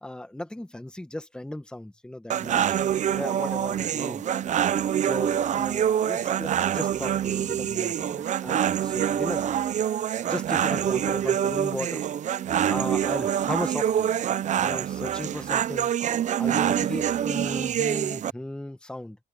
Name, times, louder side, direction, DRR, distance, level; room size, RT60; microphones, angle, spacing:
voice 1, 0.0-2.8 3.1-4.3 5.0-9.6 10.3-12.4 12.7-14.2 14.6-15.9 16.4-19.2, left 1 dB, 5° left, 1.8 m, -36 dB
sound 1, 2.3-18.3, right 10 dB, 45° right, 0.7 m, -26 dB
sound 2, 5.5-13.0, right 12 dB, 65° right, 7.4 m, -43 dB
cardioid pair, 110°, 17 cm